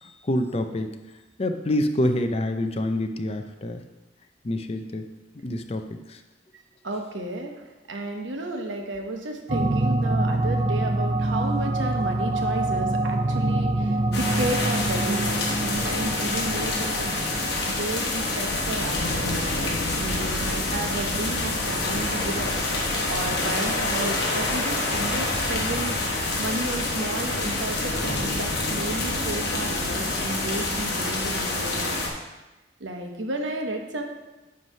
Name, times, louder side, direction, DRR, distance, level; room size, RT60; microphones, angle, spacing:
voice 1, 0.0-0.9 1.4-3.8 4.4-5.1 5.4-6.2, left 1 dB, 35° left, 7 dB, 0.5 m, -27 dB
voice 2, 6.8-17.3 17.6-22.5 23.1-25.9 26.4-32.0 32.8-34.0, right 2 dB, 85° right, 3 dB, 1.0 m, -32 dB
sound 1, 9.5-17.9, right 2 dB, 30° right, 0.3 m, -26 dB
sound 2, 14.1-32.1, left 2 dB, 60° left, 1.3 m, -27 dB
9.4 x 3.2 x 5.5 m, 1.1 s
head